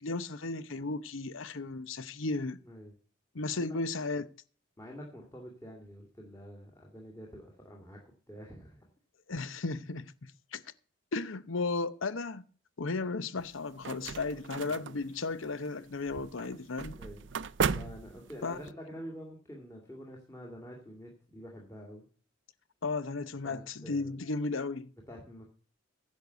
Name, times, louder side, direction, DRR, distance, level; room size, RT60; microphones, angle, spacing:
voice 1, 0.0-2.6 3.3-4.3 9.3-10.6 11.1-12.4 12.8-17.0 18.4-18.6 22.8-24.9, left 3 dB, 75° left, 0.8 m, -35 dB
voice 2, 4.8-8.9 13.0-13.1 14.6-15.0 17.0-17.3 17.7-22.1 23.4-24.1 25.1-25.5, equal, 15° left, 2.2 m, -47 dB
sound 1, 13.4-18.7, right 5 dB, 65° right, 0.5 m, -37 dB
10.5 x 6.6 x 8.0 m
head